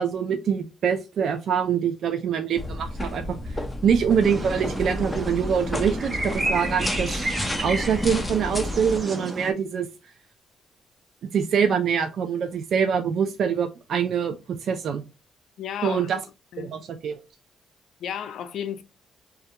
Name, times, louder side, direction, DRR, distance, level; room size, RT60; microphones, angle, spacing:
voice 1, 0.0-7.1 7.6-9.9 11.3-15.0 15.8-16.2 16.6-17.2, right 7 dB, 65° right, 0.3 m, -24 dB
sound 1, 2.6-9.0, left 1 dB, 15° left, 0.5 m, -32 dB
sound 2, 4.2-9.5, right 1 dB, 30° right, 0.7 m, -31 dB
voice 2, 15.6-16.1 16.5-16.7 18.0-18.8, left 9 dB, 70° left, 0.4 m, -33 dB
2.2 x 2.2 x 2.7 m
cardioid pair, 90°, 0 cm